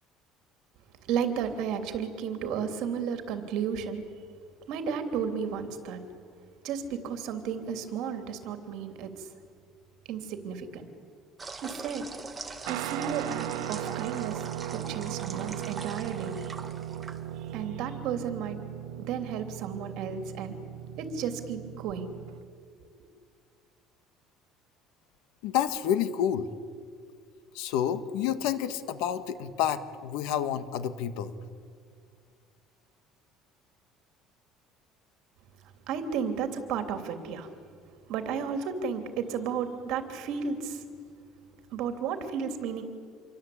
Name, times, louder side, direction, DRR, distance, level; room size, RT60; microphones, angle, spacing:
voice 1, 1.1-4.0 4.7-6.0 6.6-9.3 10.1-10.9 11.6-12.0 12.7-14.4 14.7-16.3 17.5-18.6 19.0-20.5 21.0-22.1 35.9-37.5 38.1-40.8 41.7-42.8, right 7 dB, 60° right, 7 dB, 3.1 m, -33 dB
sound 1, 11.4-17.6, right 3 dB, 15° right, 1.7 m, -43 dB
Guitar, 12.7-22.4, right 12 dB, 90° right, 1.2 m, -37 dB
voice 2, 25.4-26.5 27.5-31.3, left 10 dB, 80° left, 12 dB, 1.6 m, -29 dB
27.5 x 23.5 x 8.7 m, 2.1 s
cardioid pair, 170°, 0 cm